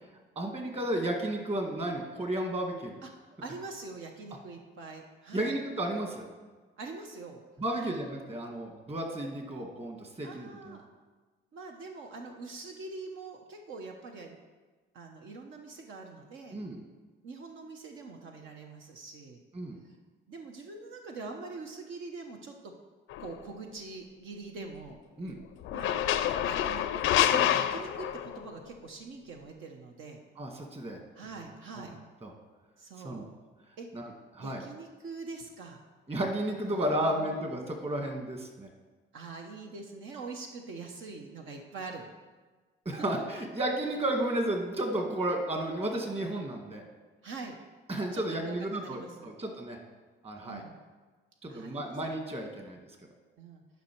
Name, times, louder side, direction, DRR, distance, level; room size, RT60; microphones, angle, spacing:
voice 1, 0.3-3.0 5.3-6.2 7.6-10.8 16.5-16.8 19.5-19.8 25.2-25.4 30.4-31.0 31.3-31.5 31.7-31.9 32.2-32.3 33.0-33.2 33.9-34.6 36.1-38.7 42.8-46.8 47.9-49.8 50.2-50.6 51.4-52.8, right 1 dB, 30° right, 3 dB, 1.7 m, -33 dB
voice 2, 3.4-5.5 6.8-7.4 7.7-7.9 10.2-10.8 11.5-14.4 14.9-16.6 17.2-19.4 19.8-20.0 20.3-22.7 23.2-25.0 25.7-26.0 26.4-30.2 31.1-32.0 32.8-33.3 33.8-33.9 34.4-35.8 36.7-37.4 39.1-42.1 47.2-47.6 48.1-49.3 50.5-50.8 51.5-52.0 53.4-53.6, right 3 dB, 80° right, 2 dB, 1.0 m, -44 dB
sound 1, 23.1-23.3 25.6-28.5, left 11 dB, 90° left, 0.5 m, -27 dB
10.5 x 5.4 x 4.6 m, 1.3 s
cardioid pair, 90°, 20 cm